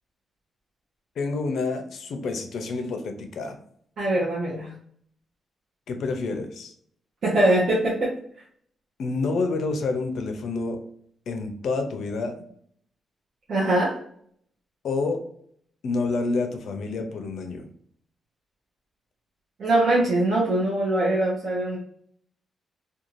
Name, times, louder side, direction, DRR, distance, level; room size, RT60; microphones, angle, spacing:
voice 1, 1.2-3.6 5.9-6.7 9.0-10.8 11.3-12.4 14.8-15.2 15.8-17.7, left 3 dB, 60° left, 5 dB, 0.4 m, -28 dB
voice 2, 4.0-4.7 7.2-8.2 13.5-14.0 19.6-21.8, right 1 dB, 50° right, -5 dB, 0.7 m, -22 dB
2.5 x 2.2 x 3.0 m, 0.64 s
wide cardioid pair, 170°, 0 cm